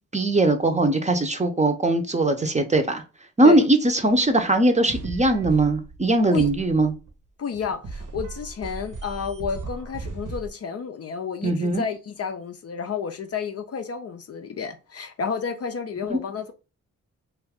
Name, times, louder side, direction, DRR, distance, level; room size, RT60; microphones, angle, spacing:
voice 1, 0.1-3.0 3.4-6.9 11.4-11.8 16.1-16.2, right 2 dB, 20° right, 0.6 m, -20 dB
sound 1, 4.1-4.2 4.9-6.1 6.4-7.1 7.5-10.5, right 3 dB, 65° right, 0.8 m, -36 dB
voice 2, 7.4-16.5, left 6 dB, 45° left, 0.5 m, -31 dB
2.6 x 2.4 x 3.4 m
supercardioid pair, 45°, 33 cm